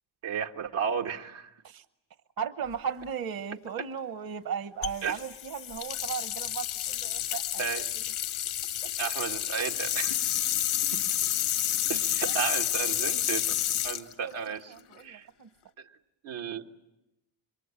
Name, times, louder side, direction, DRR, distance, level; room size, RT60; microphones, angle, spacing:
voice 1, 0.2-1.5 5.0-5.2 7.6-7.8 9.0-10.2 11.9-13.5 13.8-14.7 15.0-15.3 15.8-15.9 16.2-16.6, right 7 dB, 80° right, 2 dB, 1.7 m, -33 dB
voice 2, 2.4-7.6 8.8-9.1 12.3-12.4 14.2-14.3 14.7-15.5, right 7 dB, 50° right, 12 dB, 1.0 m, -36 dB
sound 1, 4.8-15.0, left 11 dB, 85° left, 1.3 m, -30 dB
27.5 x 23.0 x 8.9 m, 0.93 s
cardioid pair, 70°, 48 cm